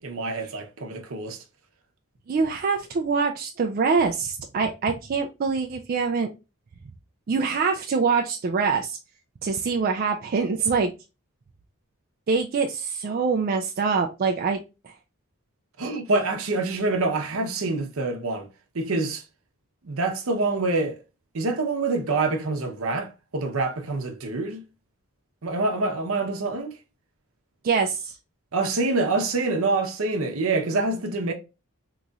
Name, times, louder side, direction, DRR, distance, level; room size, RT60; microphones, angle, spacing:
voice 1, 0.0-1.4 15.8-18.5 18.7-19.2 19.8-21.0 21.3-24.6 25.4-26.8 28.5-31.3, right 3 dB, 70° right, 0.7 m, -26 dB
voice 2, 2.3-6.3 7.3-9.0 9.4-10.9 12.3-14.6 14.8-14.9 27.6-28.2, right 5 dB, 40° right, 0.3 m, -24 dB
3.9 x 3.0 x 2.3 m
head